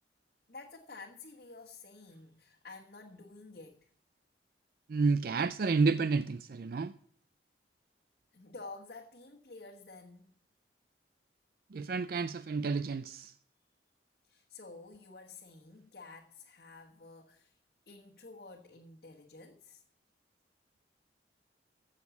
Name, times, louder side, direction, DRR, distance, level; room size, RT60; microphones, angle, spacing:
voice 1, 0.5-3.8 8.3-10.3 14.3-17.5 17.9-19.8, left 3 dB, 55° left, 1.3 m, -50 dB
voice 2, 4.9-7.0 11.7-13.3, right 4 dB, 50° right, 0.4 m, -30 dB
15.5 x 6.4 x 7.1 m
head